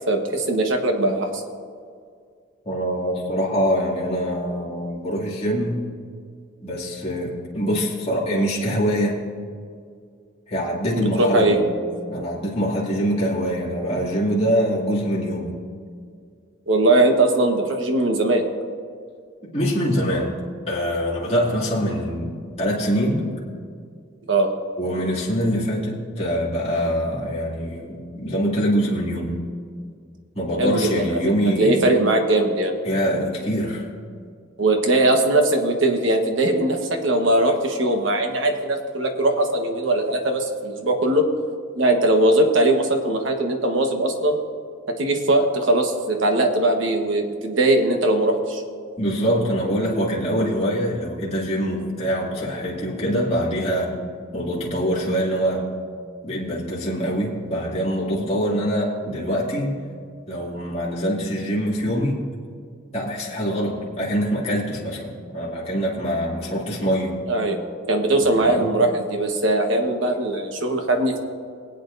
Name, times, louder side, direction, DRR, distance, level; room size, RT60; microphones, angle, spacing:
voice 1, 0.1-1.4 10.9-11.6 16.7-18.4 24.3-24.5 30.6-31.2 31.6-32.7 34.6-41.2 41.8-44.4 44.9-48.6 67.3-67.6 67.9-71.2, right 2 dB, 65° right, 3 dB, 1.2 m, -20 dB
voice 2, 2.6-5.8 6.6-9.2 10.5-11.7 12.1-15.5 19.4-20.3 20.7-23.2 24.8-29.4 30.3-31.9 32.8-33.8 49.0-54.0 54.3-55.7 56.2-59.7 60.3-62.2 62.9-67.2 68.2-68.7, equal, 30° left, -6 dB, 2.4 m, -24 dB
22.5 x 8.8 x 2.6 m, 2.2 s
head